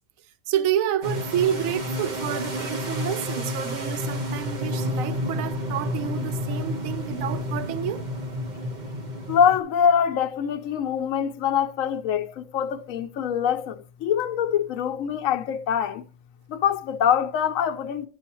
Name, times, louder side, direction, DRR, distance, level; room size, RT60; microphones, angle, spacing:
voice 1, 0.5-8.0, right 10 dB, 75° right, 1.0 m, -29 dB
sound 1, 1.0-9.6, left 1 dB, 35° right, 1.0 m, -30 dB
voice 2, 9.3-16.0 16.5-18.1, left 8 dB, 75° left, 1.0 m, -24 dB
9.6 x 6.4 x 2.9 m
omnidirectional pair, 1.5 m